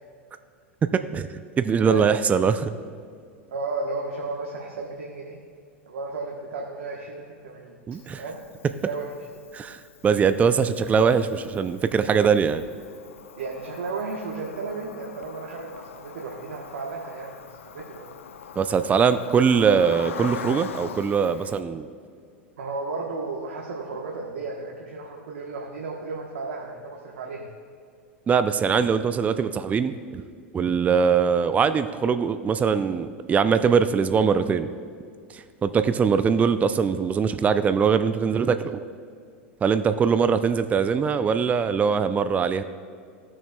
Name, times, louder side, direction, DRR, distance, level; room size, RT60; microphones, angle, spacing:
voice 1, 0.8-1.3 1.6-2.7 7.9-8.2 9.5-12.6 18.6-21.9 28.3-30.2 30.5-34.7 35.3-38.8 39.6-42.6, right 6 dB, 20° right, 11 dB, 0.4 m, -22 dB
voice 2, 1.8-2.4 3.5-5.4 5.8-7.8 8.2-8.4 8.8-9.1 13.4-18.0 22.6-27.5 39.9-40.2, right 3 dB, 75° right, -2 dB, 1.1 m, -34 dB
Cricket, 7.9-21.6, left 7 dB, 80° left, 0.5 m, -42 dB
16.5 x 6.2 x 2.2 m, 2.2 s
hypercardioid pair, 95°, 7 cm